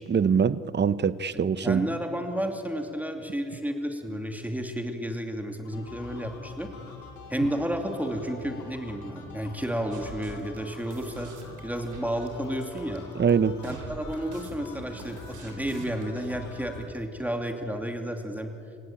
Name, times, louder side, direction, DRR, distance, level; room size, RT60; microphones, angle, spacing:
voice 1, 0.0-1.9 13.1-13.6, right 6 dB, 35° right, 16 dB, 0.9 m, -23 dB
voice 2, 1.3-6.7 7.3-11.3 11.6-13.0 13.6-18.5, equal, 5° right, 4 dB, 2.7 m, -32 dB
sound 1, 5.6-16.9, left 4 dB, 80° left, 4.6 m, -45 dB
sound 2, 9.9-16.0, right 5 dB, 75° right, 4.1 m, -45 dB
29.0 x 17.0 x 8.9 m, 2.7 s
cardioid pair, 90°, 30 cm